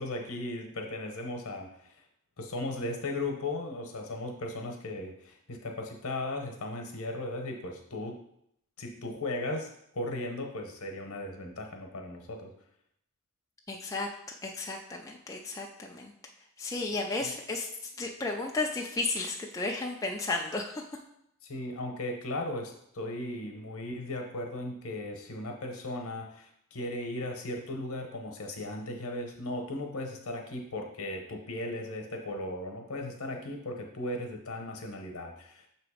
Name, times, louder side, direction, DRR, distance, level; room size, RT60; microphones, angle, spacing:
voice 1, 0.0-2.0 2.4-8.2 8.8-12.5 17.2-17.3 21.4-35.7, left 1 dB, 70° left, 3 dB, 1.0 m, -37 dB
voice 2, 13.7-14.1 14.4-16.1 16.6-17.7 18.0-20.8, left 3 dB, 15° left, 0 dB, 0.4 m, -33 dB
6.8 x 3.0 x 4.9 m, 0.75 s
head